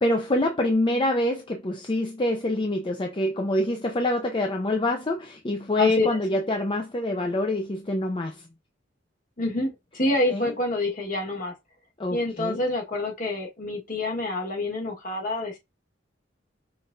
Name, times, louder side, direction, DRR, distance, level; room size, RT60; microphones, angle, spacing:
voice 1, 0.0-8.4 10.3-10.5 12.0-12.6, left 1 dB, 25° left, 0.5 m, -26 dB
voice 2, 5.8-6.1 9.4-11.5 12.1-15.6, left 2 dB, 45° left, 1.5 m, -27 dB
5.8 x 3.4 x 2.6 m
head